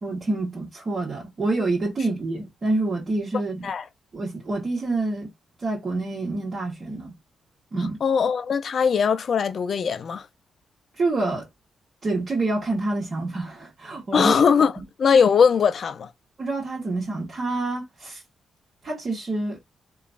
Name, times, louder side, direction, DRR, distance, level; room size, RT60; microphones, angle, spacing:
voice 1, 0.0-3.7 4.1-5.3 5.6-7.2 7.7-8.0 11.0-11.5 12.0-14.4 16.4-18.2 18.8-19.6, right 2 dB, 45° right, 1.3 m, -27 dB
voice 2, 8.0-10.3 14.1-14.7 15.0-16.1, left 6 dB, 60° left, 0.5 m, -20 dB
2.9 x 2.3 x 2.5 m
supercardioid pair, 50°, 0 cm